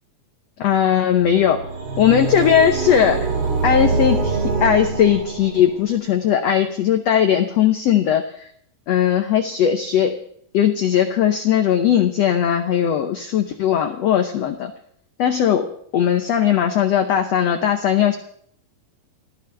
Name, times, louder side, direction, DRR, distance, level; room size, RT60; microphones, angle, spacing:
voice 1, 0.6-1.6 2.0-3.3 3.6-8.5 8.9-10.2 10.5-14.7 15.2-18.1, left 9 dB, 90° left, 6 dB, 1.4 m, -18 dB
sound 1, 1.2-5.9, right 4 dB, 80° right, 4.4 m, -24 dB
29.0 x 14.0 x 3.5 m, 0.65 s
omnidirectional pair, 4.4 m